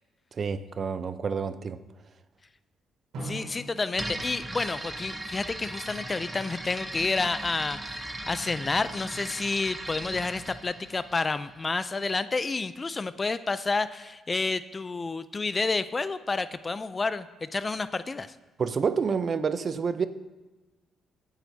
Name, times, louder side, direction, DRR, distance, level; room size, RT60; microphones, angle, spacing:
voice 1, 0.3-1.8 18.6-20.1, right 5 dB, 45° right, 12 dB, 0.6 m, -28 dB
Drum, 3.1-5.8, right 2 dB, 75° right, 4.0 m, -43 dB
voice 2, 3.2-18.3, left 3 dB, 30° left, 14 dB, 0.4 m, -30 dB
sound 1, 3.9-11.8, right 1 dB, 15° right, 1.0 m, -38 dB
17.0 x 8.9 x 2.8 m, 1.2 s
cardioid pair, 90°, 0 cm